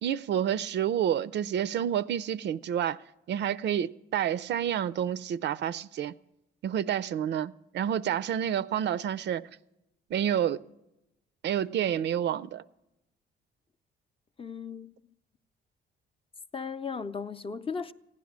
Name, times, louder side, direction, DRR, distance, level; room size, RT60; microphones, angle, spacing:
voice 1, 0.0-3.0 3.3-6.1 6.6-9.4 10.1-10.6 11.4-12.6, right 9 dB, 60° right, 0.4 m, -29 dB
voice 2, 14.4-14.9 16.5-17.9, left 5 dB, 30° left, 0.6 m, -36 dB
15.5 x 10.5 x 7.2 m
cardioid pair, 90°, 20 cm